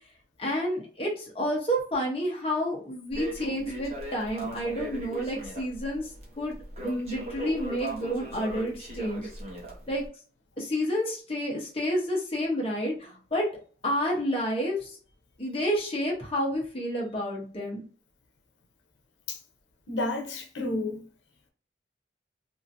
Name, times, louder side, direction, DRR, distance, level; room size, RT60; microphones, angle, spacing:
voice 1, 0.4-6.1 6.4-6.6 6.8-9.3 9.9-10.0 10.6-13.5 13.8-15.0 15.4-17.8, equal, 30° left, 1.0 m, -29 dB
Crackle, 3.1-10.1, right 1 dB, 35° right, 0.9 m, -39 dB
voice 2, 19.9-21.0, left 2 dB, 85° left, 0.8 m, -31 dB
2.9 x 2.6 x 2.6 m
head